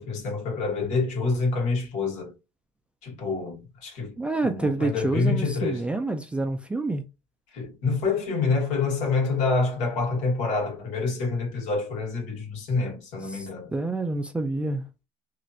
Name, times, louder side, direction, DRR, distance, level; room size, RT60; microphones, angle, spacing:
voice 1, 0.0-2.3 3.0-4.2 4.4-5.8 7.5-13.7, left 4 dB, 65° left, 1.7 m, -27 dB
voice 2, 4.2-7.0 13.3-14.8, right 2 dB, 10° right, 0.3 m, -28 dB
3.0 x 2.8 x 2.4 m
cardioid pair, 130°, 13 cm